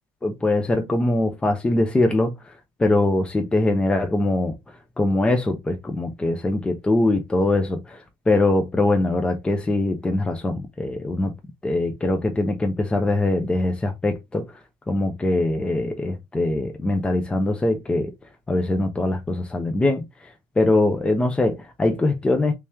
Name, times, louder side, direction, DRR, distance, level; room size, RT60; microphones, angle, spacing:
voice 1, 0.2-11.3 11.6-18.1 18.5-22.5, left 2 dB, 10° left, 0.5 m, -22 dB
3.3 x 2.9 x 3.3 m
cardioid pair, 120°, 9 cm